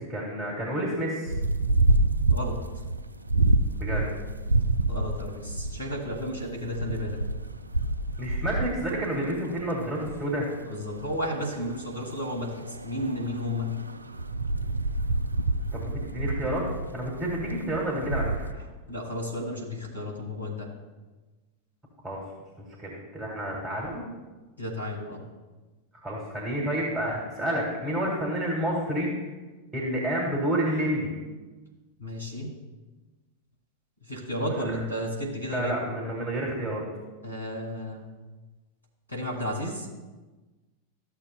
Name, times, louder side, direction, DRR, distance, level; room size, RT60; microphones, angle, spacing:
voice 1, 0.0-1.3 3.7-4.1 8.2-10.5 15.7-16.6 16.9-18.5 22.0-22.2 22.8-24.0 26.0-29.1 29.7-31.1 34.5-34.7 35.5-36.8, right 1 dB, 15° right, -3 dB, 1.9 m, -29 dB
sound 1, 1.3-18.5, right 2 dB, 80° right, 0.3 m, -28 dB
voice 2, 4.9-7.2 10.7-13.7 18.9-20.7 24.6-25.3 32.0-32.5 34.0-35.8 37.2-38.1 39.1-39.9, left 1 dB, 90° left, 0 dB, 2.0 m, -33 dB
13.5 x 6.8 x 2.2 m, 1.2 s
figure-of-eight pair, 90°, 0 cm